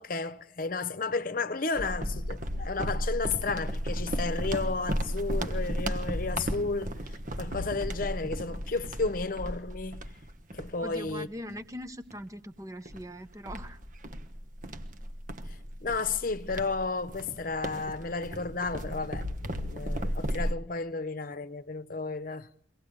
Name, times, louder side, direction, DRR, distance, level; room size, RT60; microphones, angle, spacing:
voice 1, 0.0-10.1 10.5-11.3 15.5-22.5, left 4 dB, 50° left, 0.9 m, -33 dB
sound 1, 1.8-11.6 12.1-12.3 12.9-20.5, equal, 45° right, 1.3 m, -34 dB
voice 2, 10.8-13.8, equal, 20° right, 0.9 m, -41 dB
24.5 x 18.0 x 8.7 m
head